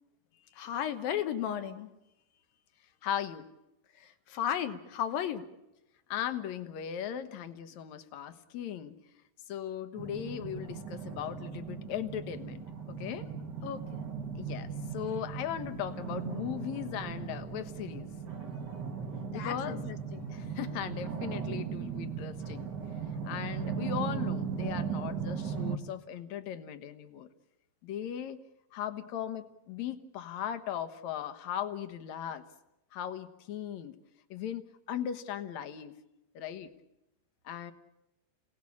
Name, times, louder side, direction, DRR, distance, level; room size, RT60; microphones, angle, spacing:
voice 1, 0.5-1.9 4.0-5.4 13.6-14.0 19.3-20.3, left 9 dB, 85° left, 9 dB, 3.1 m, -34 dB
voice 2, 3.0-3.5 6.1-8.9 9.5-13.3 14.4-18.1 19.3-19.9 20.3-22.7 23.3-27.3 27.8-28.4 28.7-32.4 32.9-33.9 34.3-35.9 36.3-36.7 37.4-37.7, left 9 dB, 65° left, 10 dB, 2.3 m, -38 dB
sound 1, 10.0-25.8, right 6 dB, 40° right, 1.6 m, -37 dB
28.0 x 18.0 x 8.5 m, 0.92 s
omnidirectional pair, 4.0 m